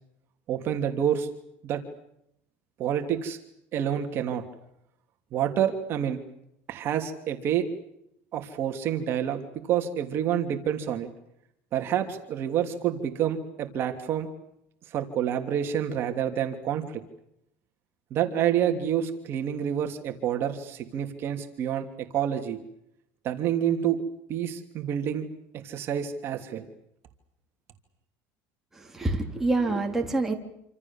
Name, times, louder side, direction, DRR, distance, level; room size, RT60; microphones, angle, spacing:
voice 1, 0.5-1.3 1.6-1.8 2.8-3.4 3.7-4.4 5.3-6.2 6.7-7.7 8.3-11.1 11.7-14.3 14.9-17.0 18.1-22.6 23.2-24.0 24.3-25.3 25.5-26.7, right 9 dB, 40° right, 5 dB, 3.0 m, -28 dB
voice 2, 28.7-30.3, right 2 dB, 5° right, 1 dB, 3.7 m, -26 dB
28.0 x 27.0 x 7.4 m, 0.79 s
cardioid pair, 145°, 6 cm